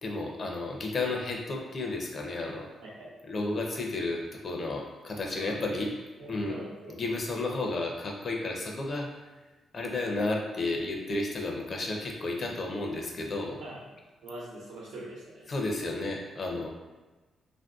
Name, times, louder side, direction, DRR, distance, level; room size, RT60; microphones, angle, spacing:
voice 1, 0.0-2.7 3.3-5.9 6.3-6.6 6.9-9.1 9.7-13.6 15.5-16.7, left 2 dB, 45° left, 0 dB, 0.5 m, -32 dB
voice 2, 2.8-3.1 5.4-5.9 6.2-6.9 9.8-10.2 13.6-13.9 14.2-15.5, right 1 dB, 90° right, -5 dB, 0.9 m, -43 dB
3.1 x 2.5 x 2.3 m, 1.2 s
cardioid pair, 120°, 0 cm